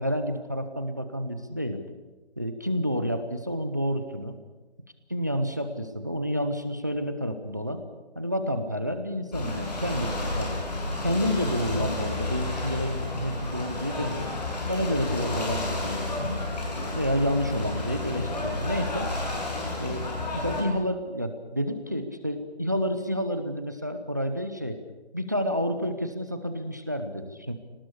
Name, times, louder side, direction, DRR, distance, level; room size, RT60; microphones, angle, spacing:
voice 1, 0.0-1.8 2.4-4.4 5.1-7.8 8.2-10.6 11.0-14.3 14.7-16.4 16.9-19.1 19.8-20.1 20.3-24.8 25.1-27.5, equal, 15° right, 8 dB, 0.7 m, -29 dB
Ocean / Boat Water vehicle, 9.3-20.6, left 2 dB, 40° left, 6.6 m, -31 dB
sound 1, 11.0-12.5, left 1 dB, 5° left, 1.9 m, -44 dB
22.5 x 19.0 x 8.3 m, 1.2 s
figure-of-eight pair, 170°, 33 cm